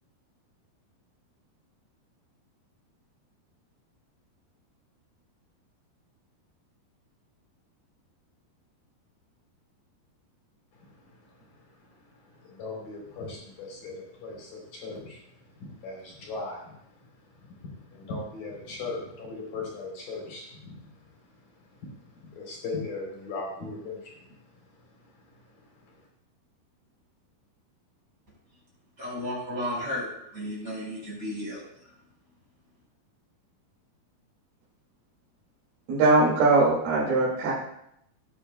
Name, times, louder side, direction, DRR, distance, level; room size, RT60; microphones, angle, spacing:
voice 1, 10.8-15.2 15.6-17.1 17.4-21.2 21.8-24.9 25.2-26.0, left 3 dB, 55° left, -2 dB, 5.2 m, -39 dB
voice 2, 29.0-31.6, left 1 dB, 20° right, -4 dB, 5.3 m, -33 dB
voice 3, 35.9-37.5, right 3 dB, 65° right, -7 dB, 4.1 m, -21 dB
17.0 x 10.0 x 2.3 m, 0.75 s
omnidirectional pair, 4.7 m